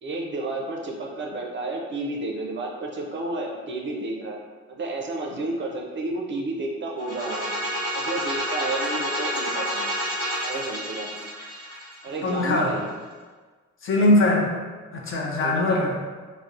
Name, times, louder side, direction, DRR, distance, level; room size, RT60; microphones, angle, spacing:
voice 1, 0.0-4.4 4.7-7.5 7.9-10.0 10.4-11.3 12.0-12.9 15.4-15.9, right 2 dB, 40° right, 0 dB, 0.4 m, -31 dB
sound 1, 7.0-12.8, equal, 30° left, 0.9 m, -29 dB
voice 2, 12.2-12.7 13.8-14.5 14.9-15.9, left 2 dB, 45° left, -2 dB, 0.5 m, -21 dB
2.6 x 2.0 x 2.4 m, 1.4 s
cardioid pair, 90°, 30 cm